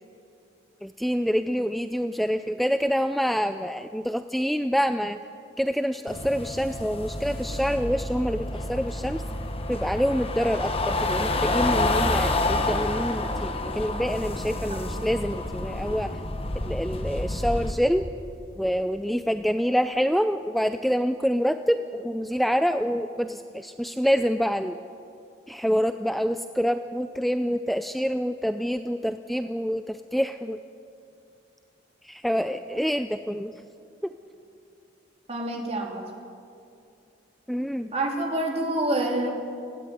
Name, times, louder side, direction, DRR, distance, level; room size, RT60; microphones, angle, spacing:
voice 1, 0.8-5.2 5.6-9.2 9.7-16.1 16.6-18.0 18.6-24.8 25.5-30.6 32.0-33.5 34.0-34.1 37.5-37.9, equal, ahead, 9 dB, 0.4 m, -26 dB
sound 1, 6.1-17.7, left 2 dB, 30° left, 1.4 m, -28 dB
voice 2, 35.3-36.0 37.9-39.3, right 1 dB, 35° right, 1 dB, 3.3 m, -27 dB
19.5 x 16.5 x 9.5 m, 2.5 s
head